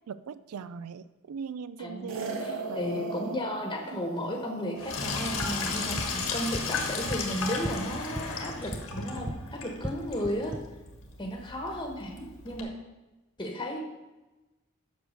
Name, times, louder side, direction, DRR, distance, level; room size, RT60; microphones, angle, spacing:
voice 1, 0.1-3.3 3.9-4.0, right 6 dB, 90° right, 15 dB, 0.4 m, -40 dB
voice 2, 1.8-2.1 2.4-10.5 11.2-12.7 13.4-13.8, equal, 20° left, 1 dB, 1.2 m, -34 dB
sound 1, 2.1-6.5, right 3 dB, 65° right, 1.4 m, -39 dB
Sink (filling or washing), 4.8-12.6, left 4 dB, 75° left, 1.6 m, -35 dB
sound 2, 5.4-9.4 9.7-10.6, right 1 dB, 10° right, 0.6 m, -39 dB
8.2 x 6.3 x 6.4 m, 1.1 s
head